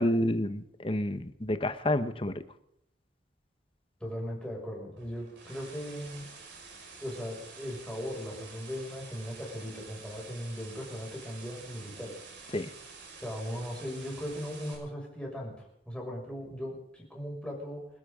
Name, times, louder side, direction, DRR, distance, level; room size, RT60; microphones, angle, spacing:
voice 1, 0.0-2.3 12.5-12.7, left 1 dB, 30° left, 10 dB, 1.2 m, -29 dB
voice 2, 4.0-6.3 7.0-12.2 13.2-17.9, equal, 5° left, -2 dB, 6.4 m, -38 dB
sound 1, 5.0-14.8, right 4 dB, 90° right, 5.8 m, -49 dB
28.5 x 12.5 x 3.8 m, 0.76 s
head